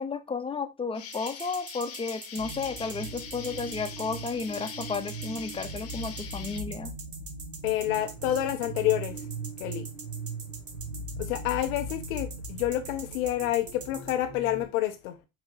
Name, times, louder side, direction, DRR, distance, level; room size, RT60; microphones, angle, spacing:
voice 1, 0.0-6.9, left 4 dB, 15° left, 0.7 m, -33 dB
Insect, 0.9-6.6, left 7 dB, 35° left, 0.9 m, -43 dB
sound 1, 1.1-14.1, right 4 dB, 35° right, 1.4 m, -43 dB
sound 2, 2.4-14.7, right 2 dB, 80° right, 1.6 m, -40 dB
voice 2, 7.6-9.2 9.6-9.9 11.2-15.2, left 13 dB, 80° left, 0.6 m, -28 dB
4.7 x 2.7 x 3.8 m
hypercardioid pair, 75°, 39 cm